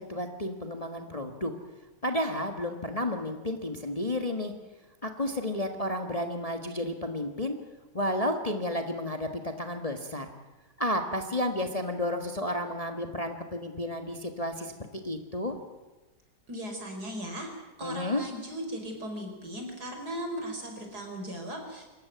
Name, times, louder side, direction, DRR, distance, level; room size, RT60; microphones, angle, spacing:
voice 1, 0.1-1.5 2.0-4.5 5.0-7.6 7.9-10.3 10.8-14.7 15.0-15.6 17.8-18.2, left 1 dB, 20° left, 5 dB, 1.6 m, -31 dB
voice 2, 16.5-17.5 17.8-21.9, equal, 60° right, 3 dB, 5.3 m, -37 dB
26.0 x 14.5 x 9.4 m, 1.2 s
omnidirectional pair, 1.9 m